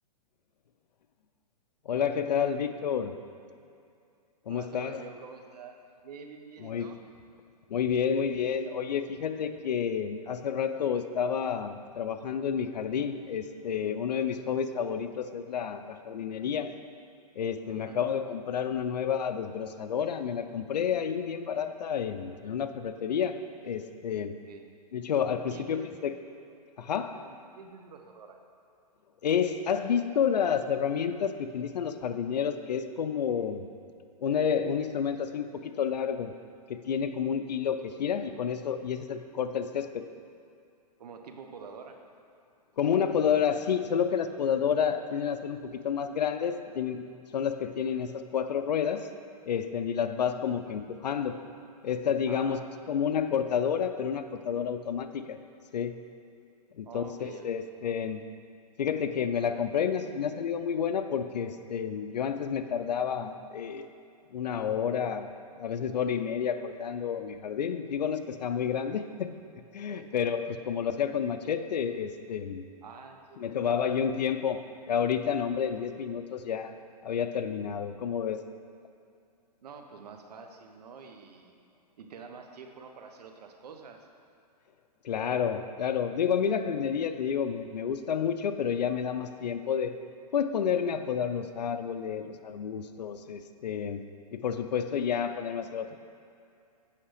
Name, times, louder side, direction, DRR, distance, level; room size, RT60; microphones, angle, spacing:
voice 1, 1.9-3.2 4.5-5.0 6.6-6.9 7.7-16.8 17.4-24.4 24.9-26.1 26.8-27.2 29.2-33.7 34.2-36.3 36.7-40.0 42.8-49.1 49.5-51.4 51.8-55.4 55.7-56.0 56.8-58.2 58.8-63.9 64.3-65.3 65.6-69.3 69.7-72.6 73.4-78.4 85.0-90.0 90.3-96.0, left 7 dB, 90° left, 10 dB, 0.6 m, -30 dB
voice 2, 4.5-5.8 6.0-7.0 17.6-18.0 24.4-24.6 25.5-25.9 27.1-28.4 41.0-42.0 52.3-52.7 56.8-57.5 69.9-70.1 72.8-73.5 79.6-81.5 82.0-84.1, right 5 dB, 75° right, 4 dB, 1.0 m, -47 dB
8.6 x 5.7 x 5.0 m, 2.5 s
hypercardioid pair, 150°, 21 cm